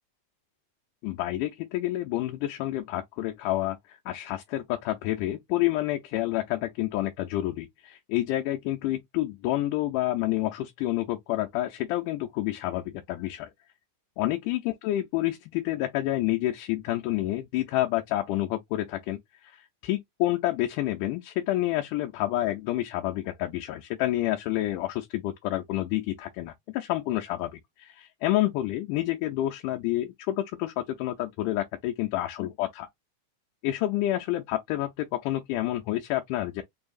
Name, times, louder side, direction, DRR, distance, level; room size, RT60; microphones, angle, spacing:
voice 1, 1.0-13.5 14.2-32.9 33.6-36.6, left 15 dB, 80° left, 2.1 m, -29 dB
5.5 x 2.7 x 2.3 m
omnidirectional pair, 3.7 m